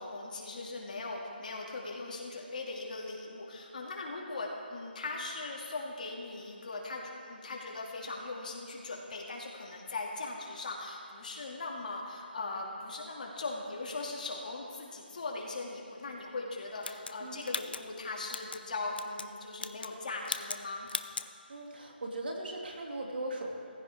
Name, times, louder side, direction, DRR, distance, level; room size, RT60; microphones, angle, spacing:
voice 1, 0.0-20.9, left 3 dB, 50° left, -2 dB, 2.5 m, -39 dB
sound 1, 16.8-18.6 18.9-19.3 19.6-20.0 20.2-20.6 20.9-21.3, left 4 dB, 65° left, 0.7 m, -38 dB
voice 2, 21.5-23.5, right 1 dB, 65° right, 0 dB, 2.6 m, -38 dB
16.5 x 15.5 x 3.6 m, 2.4 s
hypercardioid pair, 170°, 6 cm